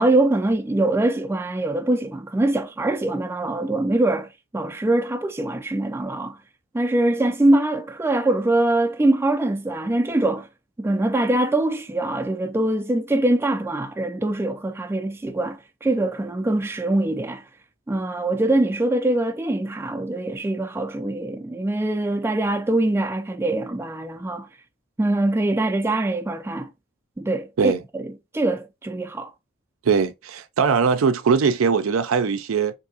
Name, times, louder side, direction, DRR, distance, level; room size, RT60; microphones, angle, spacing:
voice 1, 0.0-6.4 6.7-10.5 10.8-17.4 17.9-24.5 25.0-26.7 27.2-29.3, right 2 dB, 10° right, 0.3 m, -23 dB
voice 2, 29.8-32.7, right 5 dB, 75° right, 0.4 m, -20 dB
3.5 x 2.7 x 2.6 m
head